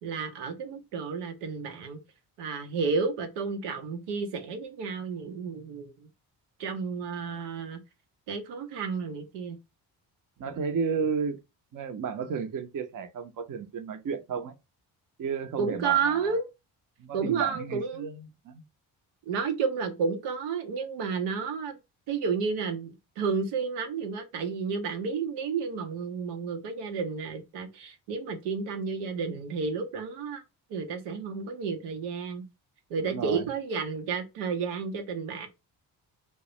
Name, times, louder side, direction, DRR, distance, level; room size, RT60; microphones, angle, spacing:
voice 1, 0.0-2.0 2.4-6.1 6.6-7.8 8.3-9.6 15.6-16.5 17.1-18.1 19.3-21.8 22.1-30.4 30.7-32.4 32.9-35.5, right 5 dB, 80° right, 0.7 m, -31 dB
voice 2, 10.4-11.4 11.7-14.5 15.2-16.4 17.0-18.6 33.1-33.5, right 6 dB, 40° right, 0.6 m, -33 dB
2.3 x 2.1 x 2.8 m
hypercardioid pair, 45°, 50 cm